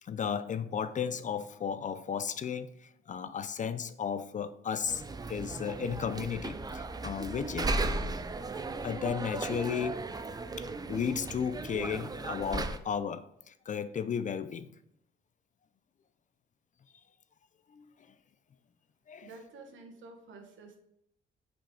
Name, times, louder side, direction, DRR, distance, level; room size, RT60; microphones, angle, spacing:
voice 1, 0.0-5.0 5.3-7.8 8.8-10.0 10.6-14.7 17.7-17.8 19.1-19.3, left 7 dB, 40° left, 0.5 m, -34 dB
sound 1, 4.9-12.8, right 3 dB, 20° right, 0.5 m, -36 dB
voice 2, 19.2-20.8, right 3 dB, 75° right, 1.4 m, -50 dB
6.1 x 5.1 x 3.4 m
cardioid pair, 90°, 20 cm